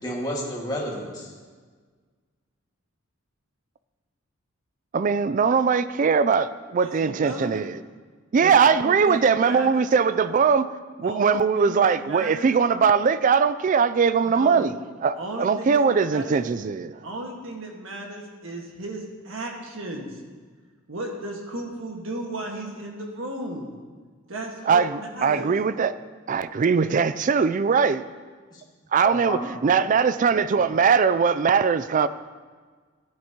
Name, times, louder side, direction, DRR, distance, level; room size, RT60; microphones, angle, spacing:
voice 1, 0.0-1.3 29.0-29.6, equal, 20° left, -3 dB, 1.8 m, -31 dB
voice 2, 4.9-7.8 8.3-10.7 11.0-14.7 15.0-16.9 24.7-25.9 26.3-28.0 28.9-32.1, right 6 dB, 40° right, 14 dB, 0.3 m, -21 dB
voice 3, 6.8-7.6 8.4-8.5 8.8-9.8 11.0-12.5 14.2-14.7 15.2-16.4 17.0-20.1 20.9-23.7 24.3-25.5, right 2 dB, 70° right, 0 dB, 1.6 m, -35 dB
14.0 x 9.7 x 2.9 m, 1.5 s
head